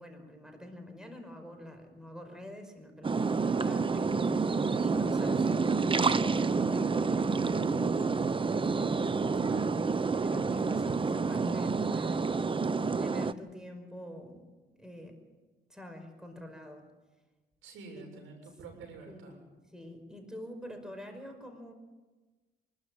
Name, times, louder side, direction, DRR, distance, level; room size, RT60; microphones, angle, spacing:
voice 1, 0.0-8.2 8.7-12.2 13.0-14.4 14.8-15.2 15.7-16.8 18.0-18.1 19.1-21.7, left 1 dB, 5° right, 5 dB, 5.3 m, -47 dB
sound 1, 3.0-13.3, right 4 dB, 25° right, 0.8 m, -28 dB
voice 2, 3.5-3.9 17.6-19.4, right 3 dB, 85° right, 2 dB, 7.1 m, -48 dB
25.5 x 13.0 x 9.4 m, 1.2 s
cardioid pair, 90°, 20 cm